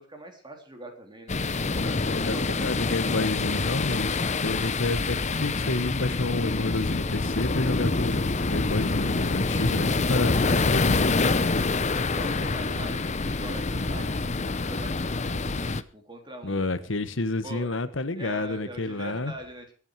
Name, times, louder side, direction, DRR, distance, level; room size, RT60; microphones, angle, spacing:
voice 1, 0.0-1.4 1.8-2.7 11.9-16.7 17.4-17.7 18.1-19.7, right 1 dB, 25° right, 4 dB, 3.4 m, -42 dB
sound 1, 1.3-15.8, left 3 dB, 35° left, 0.8 m, -26 dB
voice 2, 1.8-11.7 16.4-19.3, left 2 dB, 70° left, 12 dB, 1.3 m, -30 dB
22.5 x 8.7 x 4.8 m, 0.38 s
head